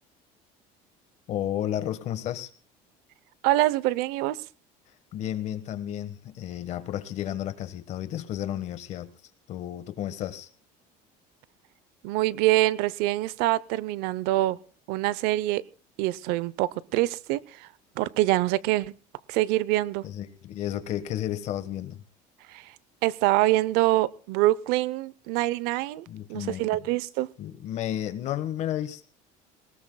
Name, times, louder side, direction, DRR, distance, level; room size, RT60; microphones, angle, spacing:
voice 1, 1.3-2.5 5.1-9.1 9.5-10.5 20.0-22.0 26.1-26.9 27.4-29.1, left 11 dB, 45° left, 11 dB, 1.4 m, -32 dB
voice 2, 3.4-4.4 12.0-14.6 14.9-15.6 16.0-17.7 18.0-18.9 19.3-20.0 22.5-22.7 23.0-27.3, right 17 dB, 70° right, 21 dB, 0.7 m, -25 dB
21.5 x 19.5 x 2.3 m, 0.40 s
cardioid pair, 170°, 17 cm